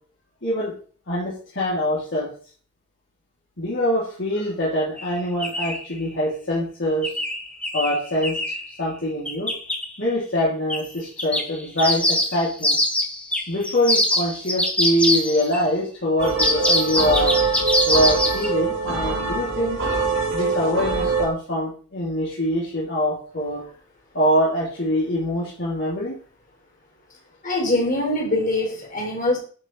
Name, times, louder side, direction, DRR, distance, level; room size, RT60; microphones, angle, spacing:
voice 1, 0.4-0.7 1.1-2.3 3.6-7.1 7.7-8.4 8.8-9.5 10.0-12.8 13.5-17.4 17.8-19.8 20.3-23.6 24.1-26.2, equal, 60° left, -6 dB, 3.2 m, -24 dB
sound 1, 5.0-5.1 5.4-5.8 7.0-8.7 9.3-9.8 10.7-10.9 11.2-15.6 16.2-18.5, left 1 dB, 5° left, 1.4 m, -23 dB
sound 2, 16.2-21.3, right 4 dB, 90° right, 3.5 m, -24 dB
voice 2, 27.4-29.4, left 2 dB, 45° left, -3 dB, 4.4 m, -23 dB
10.5 x 5.1 x 4.7 m, 0.41 s
head